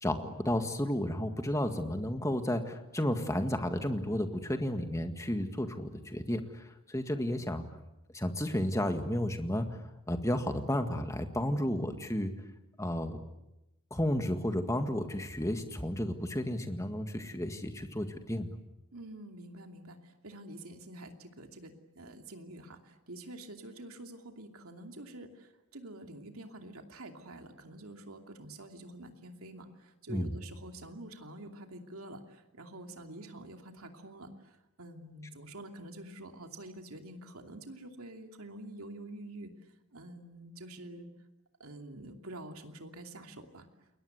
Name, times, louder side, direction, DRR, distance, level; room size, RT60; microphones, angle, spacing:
voice 1, 0.0-7.6 8.1-9.8 10.1-12.3 12.8-13.2 13.9-18.5 30.1-30.4, left 1 dB, 15° left, 7 dB, 1.8 m, -32 dB
voice 2, 18.9-39.5 39.9-41.1 41.6-43.7, right 1 dB, 80° right, 5 dB, 2.8 m, -47 dB
29.5 x 22.0 x 8.1 m, 0.93 s
head